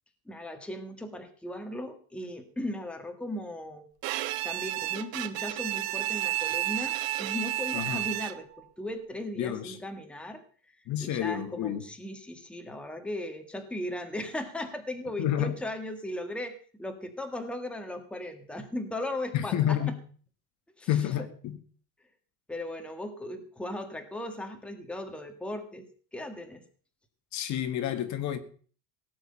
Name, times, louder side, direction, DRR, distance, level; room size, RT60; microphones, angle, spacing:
voice 1, 0.3-3.9 4.4-10.4 11.0-19.8 20.8-21.3 22.5-25.9 26.1-26.6, left 1 dB, 5° left, 1.7 m, -37 dB
Bowed string instrument, 4.0-8.6, right 16 dB, 65° right, 1.2 m, -31 dB
voice 2, 7.7-8.0 9.4-9.8 10.9-11.8 15.2-15.5 19.3-20.0 20.9-21.6 27.3-28.4, left 11 dB, 45° left, 1.7 m, -29 dB
17.0 x 6.3 x 8.8 m
cardioid pair, 160°, 38 cm